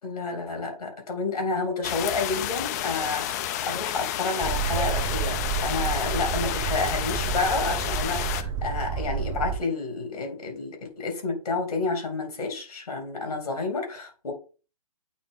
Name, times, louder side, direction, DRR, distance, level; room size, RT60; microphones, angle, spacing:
voice 1, 0.0-14.3, left 3 dB, 75° left, 2.7 m, -30 dB
sound 1, 1.8-8.4, left 12 dB, 25° left, 0.4 m, -31 dB
Boat Water vehicle, 4.4-9.6, right 7 dB, 25° right, 0.7 m, -30 dB
8.5 x 2.9 x 3.8 m
hypercardioid pair, 135°, 20 cm